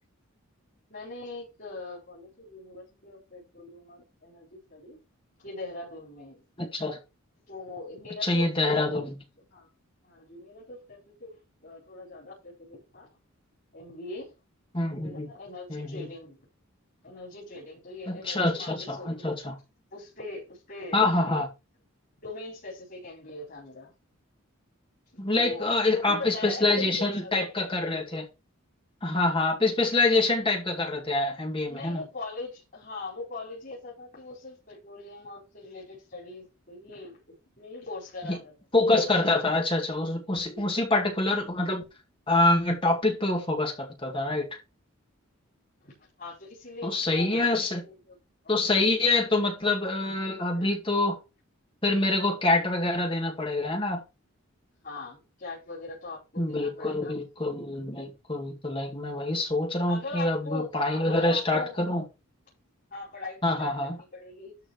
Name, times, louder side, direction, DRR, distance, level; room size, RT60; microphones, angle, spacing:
voice 1, 0.9-5.0 5.4-6.4 7.5-9.7 10.0-11.4 11.6-13.1 13.7-14.3 14.8-16.4 17.0-19.3 19.9-21.0 22.2-23.9 25.1-27.6 31.7-37.2 37.6-38.5 40.3-40.7 45.8-47.4 47.7-48.2 48.4-48.5 48.9-49.3 50.5-50.7 54.8-57.1 59.9-61.8 62.9-64.6, left 3 dB, 40° left, 4.8 m, -41 dB
voice 2, 6.6-7.0 8.2-9.1 14.7-15.3 15.7-16.1 18.1-19.6 20.9-21.5 25.2-28.3 29.0-32.0 38.3-38.4 38.7-41.8 42.3-44.5 46.8-47.9 48.5-51.2 51.8-54.0 56.4-62.0 63.4-64.0, left 2 dB, 25° left, 2.1 m, -26 dB
12.5 x 4.6 x 4.4 m
head